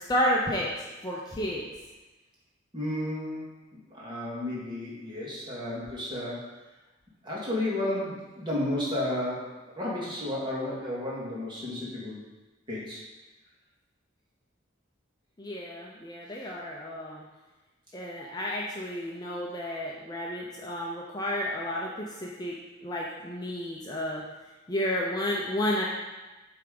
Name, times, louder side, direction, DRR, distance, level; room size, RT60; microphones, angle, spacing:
voice 1, 0.1-0.7 1.0-1.6 15.4-17.2 17.9-24.2 24.7-25.9, left 1 dB, 20° left, -3 dB, 0.6 m, -31 dB
voice 2, 2.7-3.5 3.7-6.4 7.2-12.2 12.7-13.0, left 1 dB, 25° right, -6 dB, 2.0 m, -32 dB
8.1 x 3.5 x 5.3 m, 1.1 s
head